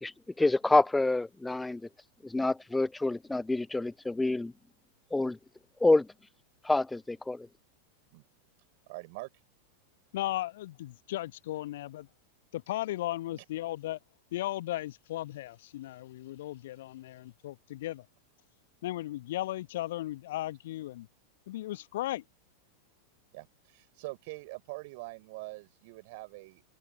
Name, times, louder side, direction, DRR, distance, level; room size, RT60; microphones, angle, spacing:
voice 1, 0.0-1.8 2.2-4.5 5.1-5.4 5.8-6.1 6.6-7.5, left 2 dB, 5° left, 0.3 m, -27 dB
voice 2, 8.9-9.3 13.3-13.4 23.3-26.6, right 25 dB, 50° right, 4.0 m, -44 dB
voice 3, 10.1-12.1 12.5-14.0 14.3-18.0 18.8-21.1 21.5-22.2, left 15 dB, 55° left, 1.5 m, -36 dB
figure-of-eight pair, 90°, 0 cm